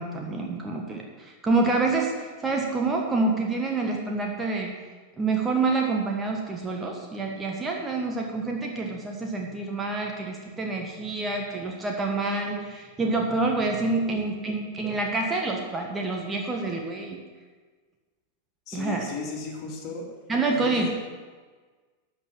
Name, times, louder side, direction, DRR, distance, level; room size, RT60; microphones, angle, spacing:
voice 1, 0.0-2.1 2.4-4.7 5.2-17.2 18.7-19.1 20.3-21.0, right 3 dB, 15° right, 0 dB, 1.4 m, -27 dB
voice 2, 14.1-14.6 18.7-20.0 20.5-21.0, left 4 dB, 35° left, -1 dB, 2.7 m, -36 dB
13.0 x 5.9 x 7.3 m, 1.4 s
figure-of-eight pair, 90°, 0 cm